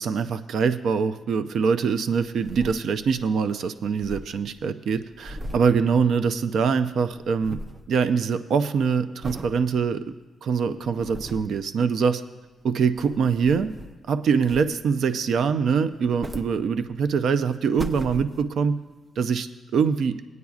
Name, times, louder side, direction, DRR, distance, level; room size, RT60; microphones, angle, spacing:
voice 1, 0.0-7.6 7.9-10.0 10.4-12.2 12.6-13.7 14.1-18.8 19.2-20.2, right 6 dB, 75° right, 11 dB, 0.4 m, -24 dB
sound 1, 2.4-3.3 3.6-3.7 3.8-6.6 6.9-7.9 8.3-8.7 9.2-9.6 10.1-10.2 10.7-11.6 12.6-14.1 14.4-15.0 15.9-17.1 17.5-18.7 19.3-19.4, equal, 30° right, 0.6 m, -39 dB
21.0 x 9.4 x 2.4 m, 1.2 s
cardioid pair, 80°, 0 cm